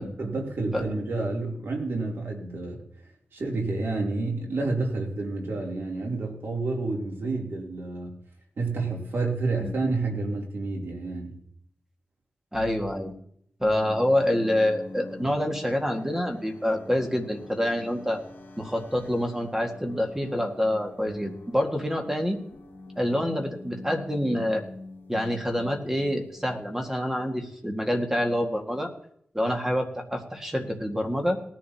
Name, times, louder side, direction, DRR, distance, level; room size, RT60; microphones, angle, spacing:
voice 1, 0.0-2.8 3.3-8.2 8.6-11.4, right 3 dB, 70° right, 0 dB, 3.1 m, -29 dB
voice 2, 12.5-13.1 13.6-18.2 18.6-22.4 23.0-24.6 25.1-28.9 29.3-31.4, left 1 dB, 10° right, 3 dB, 1.8 m, -27 dB
sound 1, 13.8-27.0, left 2 dB, 65° left, 2.4 m, -45 dB
19.0 x 10.5 x 2.9 m, 0.67 s
wide cardioid pair, 80°, 4 cm